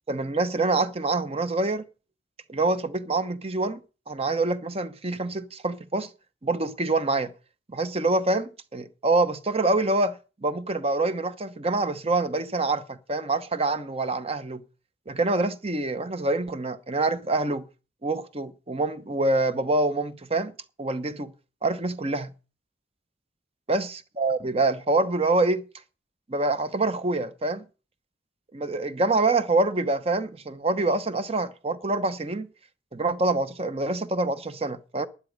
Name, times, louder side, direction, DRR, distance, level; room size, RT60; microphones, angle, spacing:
voice 1, 0.1-1.8 2.5-3.8 4.1-6.1 6.4-7.3 7.7-10.1 10.4-14.6 15.1-17.7 18.0-20.5 20.8-21.3 21.6-22.3 23.7-25.6 26.3-27.6 28.5-32.5 32.9-35.1, right 2 dB, 30° right, 0.9 m, -26 dB
11.5 x 11.0 x 5.2 m
head